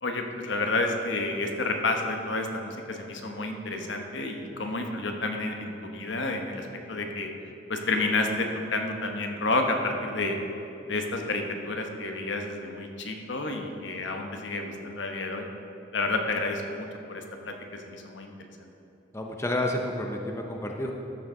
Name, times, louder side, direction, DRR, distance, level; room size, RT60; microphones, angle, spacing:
voice 1, 0.0-7.3 7.7-10.4 10.9-15.4 15.9-18.7, left 2 dB, 70° left, 4 dB, 0.9 m, -30 dB
voice 2, 19.1-20.9, left 1 dB, 15° left, 2 dB, 0.5 m, -30 dB
13.0 x 6.9 x 3.7 m, 2.9 s
head